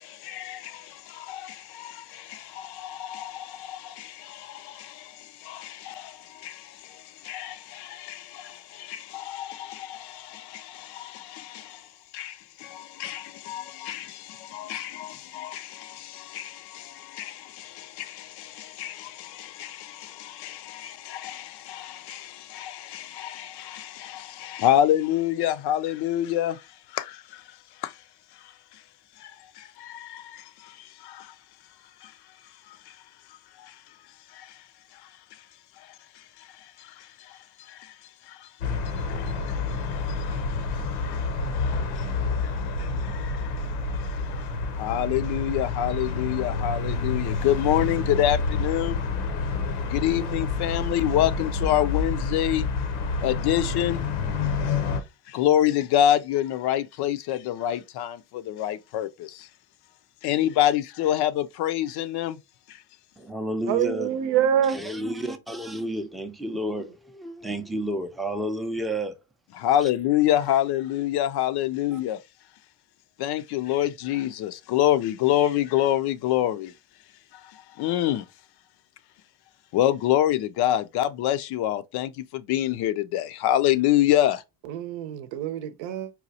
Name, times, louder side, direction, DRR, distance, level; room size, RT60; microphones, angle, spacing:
voice 1, 0.0-11.9 12.1-26.6 26.9-27.4 27.8-27.9 29.2-31.3 32.0-32.1 32.7-32.9 33.6-33.7 34.3-34.5 36.8-37.4 37.7-37.9 38.3-38.5 39.1-39.6 40.1-40.4 40.9-41.2 41.6-41.7 42.0-42.1 42.8-43.5 44.3-44.4 44.8-49.0 49.8-52.7 53.2-54.0 55.3-59.5 60.2-62.4 69.6-72.2 73.2-76.7 77.5-78.3 79.7-84.4, left 12 dB, 55° left, 0.5 m, -27 dB
sound 1, 38.6-55.0, left 4 dB, 85° left, 0.9 m, -28 dB
voice 2, 63.2-64.2 64.7-69.2 69.8-69.9 71.9-72.0, right 1 dB, ahead, 0.4 m, -31 dB
voice 3, 63.7-64.8 84.7-86.1, right 9 dB, 70° right, 0.7 m, -25 dB
4.2 x 2.3 x 2.7 m
supercardioid pair, 75°, 47 cm